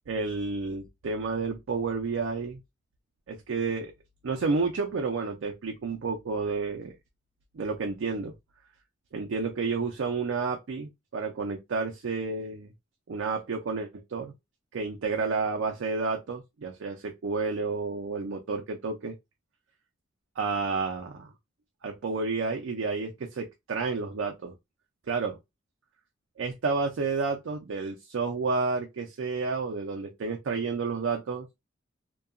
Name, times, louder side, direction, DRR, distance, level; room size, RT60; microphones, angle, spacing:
voice 1, 0.1-2.6 3.3-3.9 4.2-6.9 7.5-8.3 9.1-12.7 13.1-14.3 14.7-19.1 20.4-21.3 21.8-24.5 25.1-25.4 26.4-31.5, right 4 dB, 80° right, 0.4 m, -30 dB
2.7 x 2.3 x 2.4 m
head